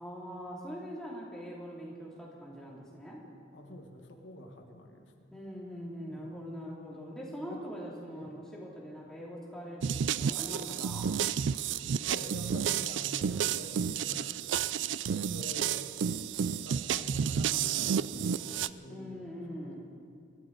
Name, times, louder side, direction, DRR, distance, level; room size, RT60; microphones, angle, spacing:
voice 1, 0.0-3.2 5.3-11.1 18.9-19.9, equal, 5° left, -5 dB, 2.8 m, -42 dB
voice 2, 3.5-5.3 6.1-6.5 7.5-7.6 8.1-8.4 12.1-14.4 15.1-15.9 16.5-19.2 19.5-19.8, left 1 dB, 85° left, 3 dB, 1.5 m, -47 dB
sound 1, 9.8-18.7, right 8 dB, 80° right, 0.4 m, -31 dB
24.0 x 13.5 x 4.0 m, 2.3 s
head